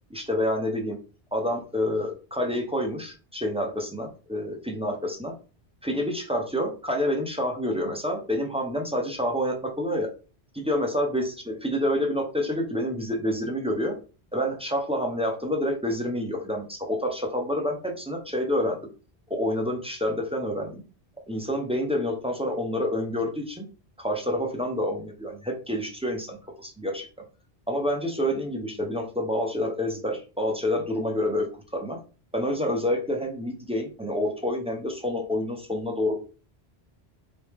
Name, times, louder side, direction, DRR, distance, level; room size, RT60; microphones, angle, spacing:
voice 1, 0.1-1.0 1.3-5.3 5.8-10.1 10.5-13.9 14.3-18.8 19.3-20.8 21.3-23.6 24.0-27.1 27.7-32.0 32.3-36.1, left 1 dB, 5° right, 1 dB, 0.8 m, -28 dB
4.4 x 3.2 x 3.5 m, 0.35 s
omnidirectional pair, 1.1 m